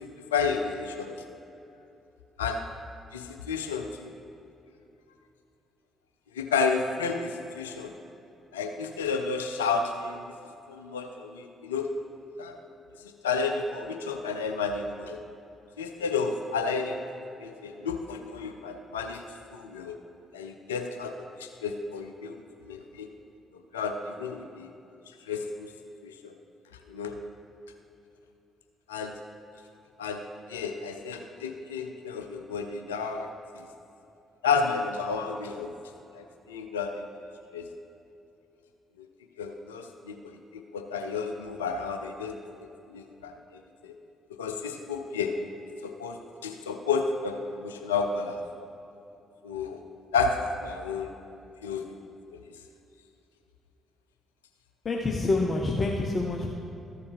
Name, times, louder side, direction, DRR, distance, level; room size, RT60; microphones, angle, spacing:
voice 1, 0.3-1.1 2.4-2.7 3.1-4.1 6.3-7.9 8.5-10.2 10.7-11.9 12.4-12.6 13.2-15.2 15.8-17.0 17.4-19.2 19.5-20.0 20.3-22.3 22.7-23.1 23.7-24.7 25.3-25.7 26.0-26.3 26.9-27.2 28.9-29.2 30.0-33.3 34.4-35.7 36.1-37.1 37.5-37.7 39.0-39.1 39.4-42.4 42.9-43.9 44.4-45.5 45.8-48.4 49.4-49.8 50.1-51.2 51.6-52.0, left 5 dB, 75° left, 6 dB, 0.4 m, -31 dB
voice 2, 54.8-56.5, left 2 dB, 35° left, 0 dB, 0.7 m, -27 dB
13.5 x 6.9 x 3.4 m, 2.8 s
figure-of-eight pair, 40°, 0 cm